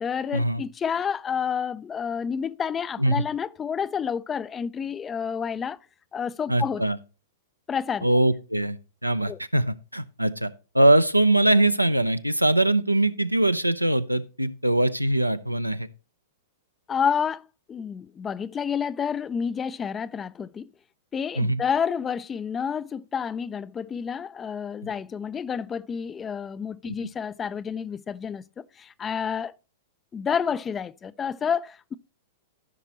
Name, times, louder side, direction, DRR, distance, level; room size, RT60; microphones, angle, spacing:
voice 1, 0.0-5.8 6.1-6.8 7.7-8.1 9.3-9.4 16.9-20.7 21.1-29.5 30.1-31.9, left 7 dB, 20° left, 0.3 m, -29 dB
voice 2, 6.5-7.0 8.0-8.8 9.0-15.9 21.4-21.6 26.8-26.9, right 1 dB, 90° right, 0.5 m, -22 dB
14.5 x 5.8 x 2.9 m
figure-of-eight pair, 100°, 0 cm